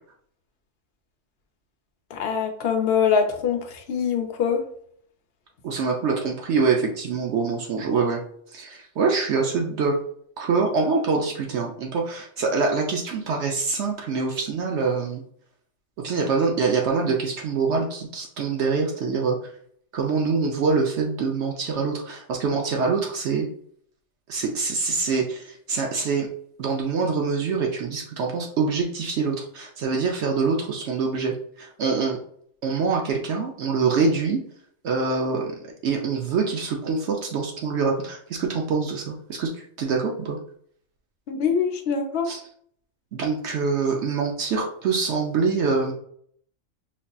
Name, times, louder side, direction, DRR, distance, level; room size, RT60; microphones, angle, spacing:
voice 1, 2.1-4.6 41.3-42.3, left 6 dB, 60° left, 4 dB, 0.8 m, -23 dB
voice 2, 5.6-8.2 8.5-10.0 10.4-15.2 16.0-19.4 19.9-23.5 24.3-26.3 26.6-32.2 32.6-34.4 34.8-40.4 42.3-42.4 43.1-45.9, right 4 dB, 70° right, 1 dB, 0.9 m, -25 dB
5.1 x 2.7 x 2.3 m, 0.63 s
omnidirectional pair, 1.3 m